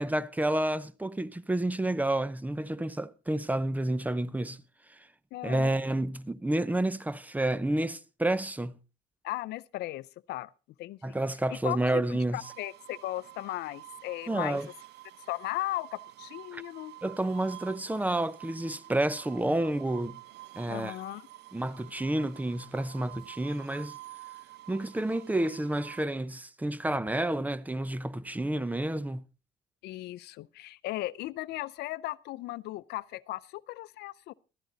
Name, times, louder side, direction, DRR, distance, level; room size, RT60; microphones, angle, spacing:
voice 1, 0.0-4.6 5.4-8.7 11.0-12.4 14.3-14.7 16.5-16.6 17.0-20.2 20.5-21.0 21.5-24.0 24.7-29.2, right 1 dB, 10° right, 0.7 m, -30 dB
voice 2, 5.3-5.7 9.2-10.5 10.8-11.2 11.5-12.0 12.3-14.6 15.3-16.9 20.7-21.3 29.8-34.3, left 17 dB, 80° left, 0.6 m, -37 dB
sound 1, 12.4-26.1, right 16 dB, 80° right, 1.0 m, -49 dB
15.0 x 13.5 x 4.0 m
cardioid pair, 110°, 17 cm